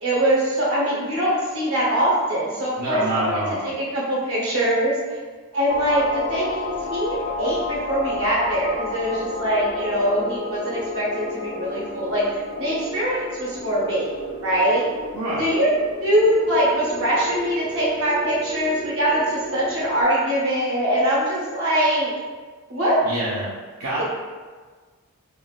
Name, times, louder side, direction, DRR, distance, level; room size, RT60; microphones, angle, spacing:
voice 1, 0.0-5.2 5.5-14.1 14.4-14.9 15.4-15.7 16.0-22.1 22.7-23.0, right 1 dB, 70° right, -6 dB, 1.0 m, -22 dB
voice 2, 2.8-3.7 15.1-15.5 23.0-23.5 23.8-24.0, right 1 dB, 90° right, -9 dB, 0.7 m, -26 dB
sound 1, 5.7-20.0, left 2 dB, 55° left, 0.9 m, -32 dB
3.5 x 2.5 x 2.4 m, 1.5 s
head